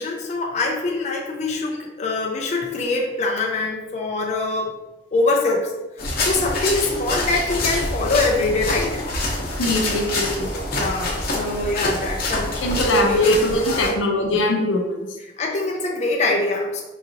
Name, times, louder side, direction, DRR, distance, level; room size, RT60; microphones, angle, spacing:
voice 1, 0.0-4.7 5.1-5.6 6.2-9.0 10.7-13.3 13.7-13.9 15.2-16.8, left 3 dB, 35° left, 0 dB, 0.4 m, -24 dB
sound 1, 6.0-13.9, left 2 dB, 50° left, 0.8 m, -26 dB
voice 2, 9.6-10.5 12.6-15.1, left 1 dB, 85° left, 2 dB, 0.6 m, -21 dB
4.8 x 2.7 x 2.6 m, 1.1 s
head